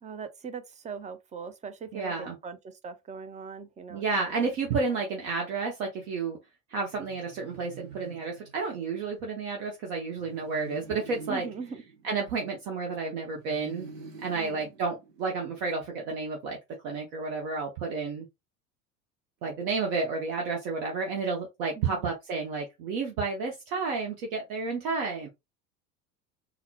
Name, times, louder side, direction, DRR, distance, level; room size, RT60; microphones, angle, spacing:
voice 1, 0.0-4.5 11.3-11.8 14.3-14.7 21.7-22.1, right 5 dB, 15° right, 0.4 m, -41 dB
voice 2, 1.9-2.4 3.9-6.4 6.7-11.5 12.0-13.9 14.2-16.6 16.8-18.3 19.4-25.3, right 4 dB, 60° right, 1.1 m, -31 dB
sound 1, 6.9-9.0 10.2-12.9 13.4-15.6, right 3 dB, 90° right, 0.9 m, -47 dB
3.9 x 2.0 x 2.8 m
figure-of-eight pair, 70°, 47 cm